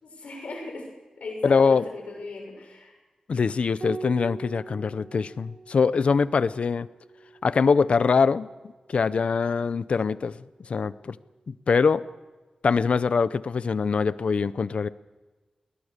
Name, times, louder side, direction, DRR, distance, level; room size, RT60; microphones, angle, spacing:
voice 1, 0.0-0.9 1.2-2.9, left 3 dB, 90° left, 1 dB, 6.4 m, -38 dB
voice 2, 1.4-1.8 3.3-6.9 7.4-8.5 8.9-10.3 10.7-11.2 11.5-12.0 12.6-14.9, left 5 dB, 60° left, 16 dB, 0.7 m, -23 dB
Piano, 3.8-8.6 10.3-11.1, right 3 dB, 40° right, 5.9 m, -43 dB
22.0 x 20.0 x 6.7 m, 1.3 s
wide cardioid pair, 150°, 2 cm